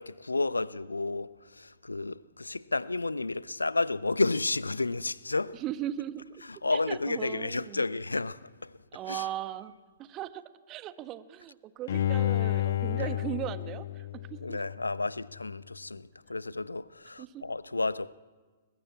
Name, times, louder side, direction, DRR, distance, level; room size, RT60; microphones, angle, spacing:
voice 1, 0.0-5.6 6.6-8.8 9.1-9.3 12.9-13.1 14.4-18.1, left 3 dB, 80° left, 0.7 m, -31 dB
voice 2, 5.5-6.4 6.7-7.8 8.9-14.6 17.2-17.4, right 12 dB, 25° right, 1.3 m, -38 dB
Bowed string instrument, 11.9-15.0 15.4-15.5, left 12 dB, 55° left, 1.1 m, -30 dB
29.5 x 22.0 x 8.4 m
figure-of-eight pair, 115°, 0 cm